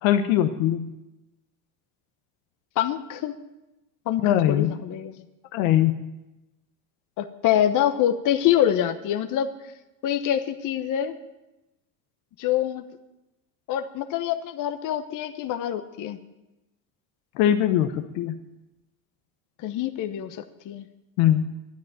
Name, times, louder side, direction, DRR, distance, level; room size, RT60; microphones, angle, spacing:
voice 1, 0.0-0.9 4.2-4.7 5.5-6.0 17.4-18.4 21.2-21.5, left 11 dB, 70° left, 8 dB, 1.0 m, -21 dB
voice 2, 2.8-3.4 4.1-5.1 7.2-9.5 10.0-11.1 12.4-12.9 13.7-16.2 19.6-20.9, left 11 dB, 45° left, 8 dB, 1.0 m, -25 dB
10.5 x 9.3 x 8.8 m, 0.98 s
supercardioid pair, 105°, 43 cm